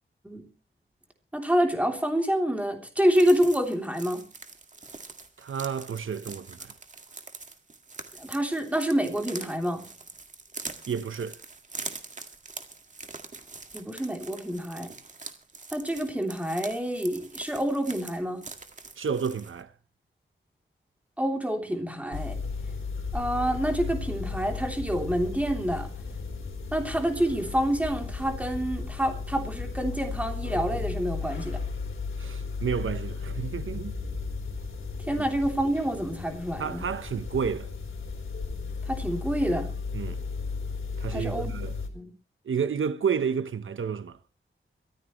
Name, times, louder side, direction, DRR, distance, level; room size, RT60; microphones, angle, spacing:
voice 1, 1.3-4.2 8.2-9.9 13.7-14.9 15.7-18.4 21.2-22.4 23.1-25.9 26.7-31.6 35.1-36.8 38.8-39.7 41.1-41.5 41.9-42.1, equal, 5° right, 3.3 m, -27 dB
sound 1, 3.1-19.6, right 3 dB, 35° right, 1.9 m, -43 dB
voice 2, 5.4-6.7 10.9-11.4 19.0-19.7 32.2-34.0 35.2-35.3 36.6-37.7 39.9-40.2 41.0-41.8 42.4-44.2, right 6 dB, 75° right, 1.0 m, -30 dB
sound 2, 22.1-41.9, left 4 dB, 75° left, 4.0 m, -35 dB
23.0 x 15.0 x 3.2 m
wide cardioid pair, 160°, 21 cm